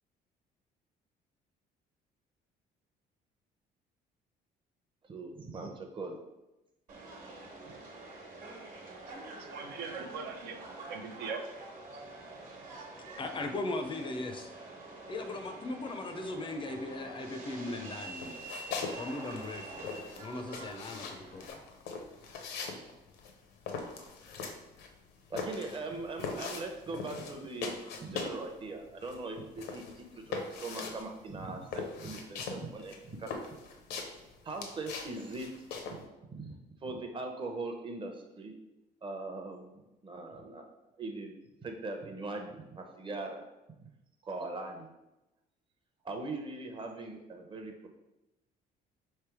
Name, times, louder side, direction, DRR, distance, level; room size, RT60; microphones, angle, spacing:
voice 1, 5.0-6.2 25.3-33.5 34.4-35.5 35.9-36.0 36.3-36.5 36.8-38.5 39.0-40.7 41.0-41.3 41.6-43.5 44.2-44.9 46.0-47.9, right 2 dB, 30° right, 4 dB, 0.7 m, -40 dB
Subway metro underground, 6.9-21.5, right 2 dB, 50° right, 1.2 m, -47 dB
voice 2, 9.2-11.5, right 5 dB, 75° right, 5 dB, 0.6 m, -41 dB
voice 3, 13.2-14.5 15.1-18.6 19.0-19.9 20.2-21.6, left 2 dB, 30° left, 5 dB, 0.5 m, -38 dB
sound 1, 18.1-19.0 19.2-28.5 28.8-36.0, left 4 dB, 80° left, 0.7 m, -40 dB
3.3 x 3.2 x 4.7 m, 0.98 s
cardioid pair, 110°, 17 cm